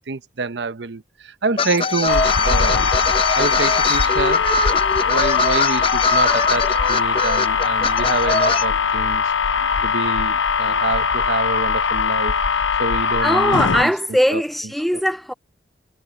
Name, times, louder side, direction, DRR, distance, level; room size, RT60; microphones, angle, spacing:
voice 1, 0.1-2.9 3.3-4.5 5.0-9.3 9.8-12.4 12.8-13.9 14.3-14.4 14.9-15.0, right 4 dB, 70° right, 0.8 m, -26 dB
sound 1, 1.6-8.6, left 3 dB, 30° left, 0.8 m, -22 dB
sound 2, 2.1-13.9, left 6 dB, 80° left, 0.7 m, -20 dB
voice 2, 13.2-15.3, equal, ahead, 0.3 m, -20 dB
head